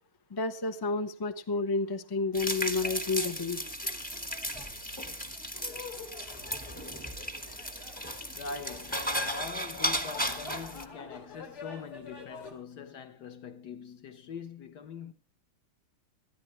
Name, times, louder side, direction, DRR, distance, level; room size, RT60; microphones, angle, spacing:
voice 1, 0.3-3.6, left 3 dB, 35° left, 0.3 m, -30 dB
sound 1, 2.3-10.8, equal, 5° left, 0.9 m, -35 dB
sound 2, 2.8-12.5, left 4 dB, 80° left, 3.8 m, -48 dB
voice 2, 8.3-15.1, left 5 dB, 55° left, 1.4 m, -43 dB
20.5 x 14.0 x 3.2 m
omnidirectional pair, 2.4 m